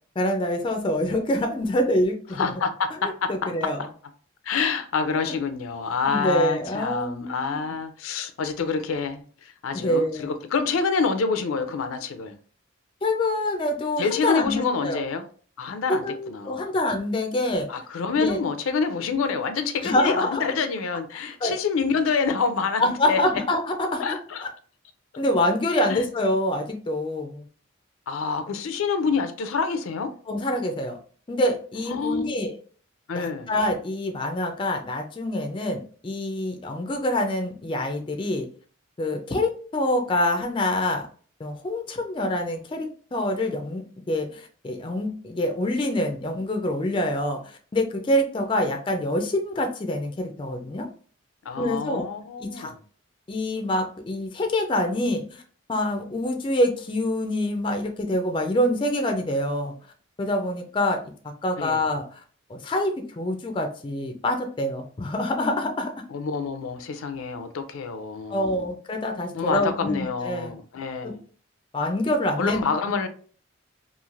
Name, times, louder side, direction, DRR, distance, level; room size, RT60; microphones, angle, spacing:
voice 1, 0.2-2.6 3.0-3.9 5.2-5.3 6.1-7.6 9.7-10.3 13.0-15.0 15.9-17.7 18.2-18.4 19.8-20.4 21.4-21.5 22.8-24.2 25.2-27.4 30.3-31.0 31.3-32.6 33.1-38.5 39.0-41.1 41.4-50.9 51.6-52.0 52.4-52.7 53.3-55.4 55.7-59.7 60.2-61.0 61.4-62.2 62.5-65.9 68.3-70.5 71.0-71.1 71.7-72.8, left 1 dB, 25° left, 0.3 m, -26 dB
voice 2, 2.3-3.5 3.8-3.9 4.4-12.3 14.0-15.2 15.6-16.6 17.7-23.2 24.0-24.5 25.9-26.1 28.1-30.1 31.9-32.3 33.1-33.5 51.5-52.7 61.6-61.8 66.1-68.7 69.3-71.2 72.4-73.1, left 5 dB, 85° left, 0.4 m, -27 dB
3.1 x 2.5 x 2.4 m
head